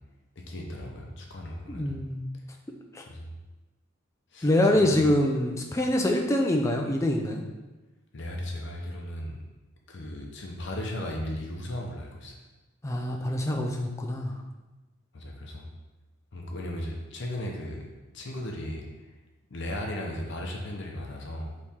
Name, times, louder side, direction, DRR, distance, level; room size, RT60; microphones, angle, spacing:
voice 1, 0.5-2.0 3.1-3.3 4.3-4.9 8.1-9.4 9.9-12.4 15.1-15.7 16.3-17.9 18.1-18.8 19.5-21.5, left 1 dB, 55° left, 0 dB, 0.6 m, -36 dB
voice 2, 1.7-2.3 2.9-3.0 4.4-7.4 12.8-14.3, left 1 dB, 15° left, 2 dB, 0.3 m, -25 dB
3.6 x 3.1 x 4.2 m, 1.1 s
head